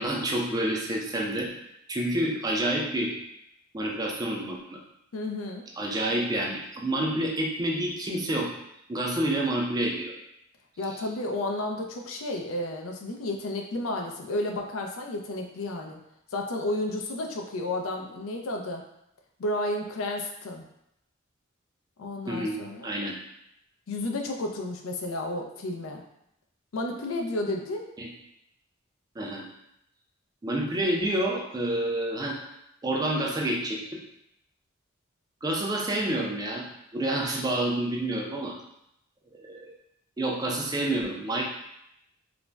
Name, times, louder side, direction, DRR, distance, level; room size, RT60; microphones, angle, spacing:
voice 1, 0.0-1.5 1.9-3.1 3.7-4.8 5.8-8.5 8.9-10.1 22.3-22.6 22.8-23.2 28.0-28.1 29.2-29.5 30.4-32.4 32.8-34.0 35.4-36.7 36.9-38.6 39.4-39.7 40.2-41.4, right 1 dB, 20° right, -1 dB, 0.3 m, -28 dB
voice 2, 5.1-5.6 10.8-16.0 16.3-18.8 19.4-20.6 22.0-22.9 23.9-26.0 26.7-27.8, left 1 dB, 85° left, 2 dB, 0.4 m, -32 dB
2.4 x 2.0 x 3.2 m, 0.79 s
head